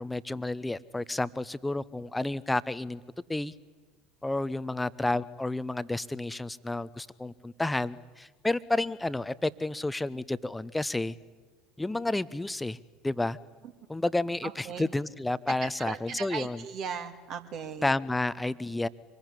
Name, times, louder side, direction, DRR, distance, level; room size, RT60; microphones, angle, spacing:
voice 1, 0.0-3.0 3.3-3.5 4.2-11.1 11.8-12.8 13.0-13.4 13.9-16.6 17.8-18.9, left 2 dB, 10° left, 16 dB, 0.9 m, -31 dB
voice 2, 14.4-14.9 15.5-17.9, right 7 dB, 50° right, 6 dB, 2.5 m, -38 dB
25.5 x 21.0 x 9.8 m, 1.3 s
figure-of-eight pair, 65°, 0 cm